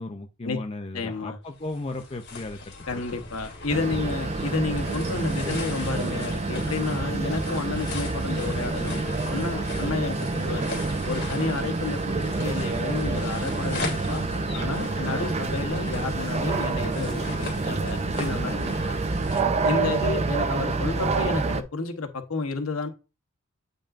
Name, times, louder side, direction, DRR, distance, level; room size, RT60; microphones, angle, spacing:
voice 1, 0.0-3.0 11.4-11.5, left 2 dB, 25° left, 0.5 m, -36 dB
voice 2, 0.9-1.4 2.9-10.7 11.1-14.3 14.5-18.8 19.6-22.9, left 3 dB, 75° left, 1.1 m, -31 dB
sound 1, 1.4-19.4, left 3 dB, 55° left, 2.8 m, -39 dB
sound 2, 3.7-21.6, right 3 dB, 30° right, 0.5 m, -28 dB
8.6 x 5.3 x 2.5 m
head